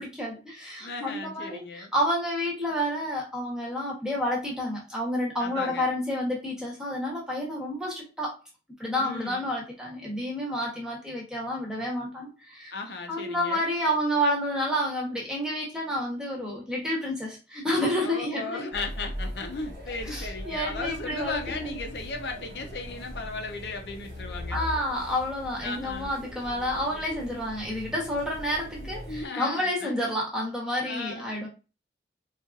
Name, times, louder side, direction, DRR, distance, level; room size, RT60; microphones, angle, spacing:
voice 1, 0.0-8.3 8.8-12.7 13.1-18.7 20.1-21.7 24.5-31.5, equal, 5° right, 0.9 m, -30 dB
voice 2, 0.8-1.9 5.4-6.0 9.0-9.4 12.7-13.7 18.0-24.6 25.6-26.1 28.8-29.9 30.8-31.3, left 3 dB, 75° left, 0.6 m, -36 dB
sound 1, 18.7-29.3, equal, 60° right, 1.2 m, -40 dB
3.9 x 2.5 x 2.4 m
head